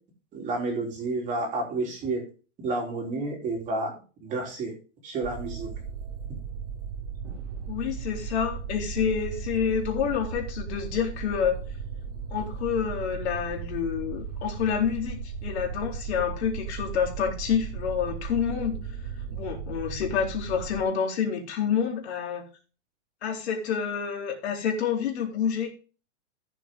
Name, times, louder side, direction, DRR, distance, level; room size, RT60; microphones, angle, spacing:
voice 1, 0.3-2.2 2.6-4.7 5.0-5.7, right 2 dB, 20° right, 3.6 m, -30 dB
sound 1, 5.2-20.8, right 6 dB, 65° right, 2.4 m, -36 dB
voice 2, 7.7-11.6 12.3-18.8 19.3-22.5 23.2-25.7, left 7 dB, 60° left, 3.9 m, -28 dB
14.5 x 7.2 x 3.8 m
supercardioid pair, 165°, 37 cm